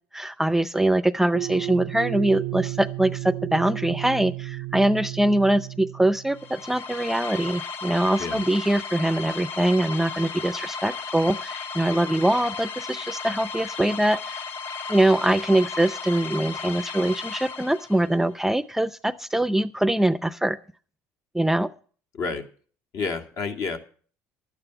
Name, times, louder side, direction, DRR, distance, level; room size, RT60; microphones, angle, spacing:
voice 1, 0.1-14.4 14.9-20.6 21.3-21.7, right 1 dB, 5° right, 16 dB, 0.5 m, -23 dB
sound 1, 1.3-6.5, right 22 dB, 70° right, 0.6 m, -33 dB
sound 2, 6.3-18.2, left 5 dB, 45° left, 0.9 m, -35 dB
voice 2, 22.1-22.5 22.9-23.8, left 4 dB, 65° left, 5 dB, 2.3 m, -29 dB
11.5 x 9.0 x 6.9 m, 0.42 s
supercardioid pair, 95°, 5 cm